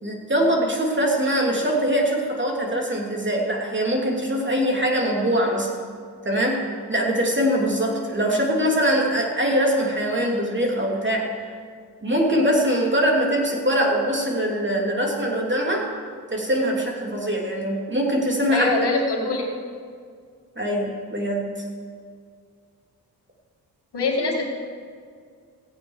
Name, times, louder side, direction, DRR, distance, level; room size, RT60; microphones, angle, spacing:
voice 1, 0.0-5.7 6.2-6.6 6.9-11.2 12.0-15.8 16.3-18.7 20.6-21.5, equal, 25° right, -1 dB, 3.0 m, -22 dB
voice 2, 18.5-19.4 23.9-24.4, left 3 dB, 75° left, 1 dB, 2.3 m, -23 dB
16.0 x 8.6 x 4.9 m, 2.1 s
cardioid pair, 45°, 41 cm